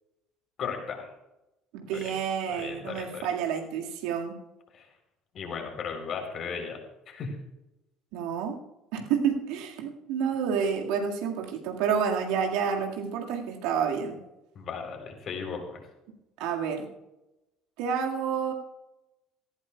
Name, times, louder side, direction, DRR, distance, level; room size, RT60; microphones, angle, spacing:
voice 1, 0.6-1.1 1.9-2.1 2.5-3.3 4.7-4.9 5.3-6.8 7.1-7.4 14.6-15.9, left 6 dB, 45° left, 4 dB, 3.7 m, -36 dB
voice 2, 1.7-4.3 8.1-8.6 8.9-14.2 16.4-16.9 17.8-18.5, right 7 dB, 60° right, 2 dB, 1.9 m, -29 dB
18.0 x 16.0 x 2.3 m, 0.94 s
figure-of-eight pair, 55°, 0 cm